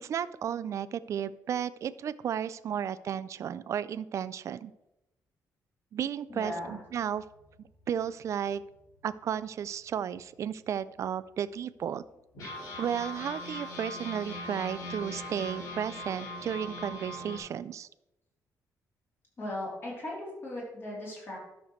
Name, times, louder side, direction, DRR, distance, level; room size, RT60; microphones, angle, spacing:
voice 1, 0.0-4.7 5.9-7.2 7.9-8.6 9.0-12.0 12.8-17.9, right 9 dB, 50° right, 16 dB, 0.3 m, -33 dB
sound 1, 6.3-9.5 10.0-10.1 10.3-10.5 11.1-11.2 12.3-17.4, left 1 dB, 70° left, 3.6 m, -41 dB
voice 2, 6.3-6.8 19.4-21.4, left 1 dB, 35° left, -5 dB, 3.4 m, -38 dB
12.0 x 6.4 x 3.2 m, 0.92 s
cardioid pair, 155°, 7 cm